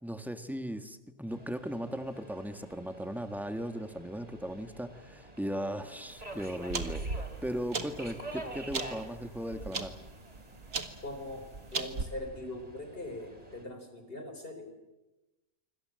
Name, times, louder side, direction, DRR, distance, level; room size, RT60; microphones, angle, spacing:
voice 1, 0.0-10.0, equal, ahead, 8 dB, 1.5 m, -37 dB
Subway metro underground, 1.3-13.7, right 1 dB, 25° right, 3.1 m, -48 dB
sound 1, 6.1-12.0, right 4 dB, 65° right, 2.1 m, -38 dB
voice 2, 11.0-14.7, left 1 dB, 40° left, 6 dB, 4.5 m, -41 dB
26.5 x 25.0 x 7.7 m, 1.1 s
omnidirectional pair, 1.5 m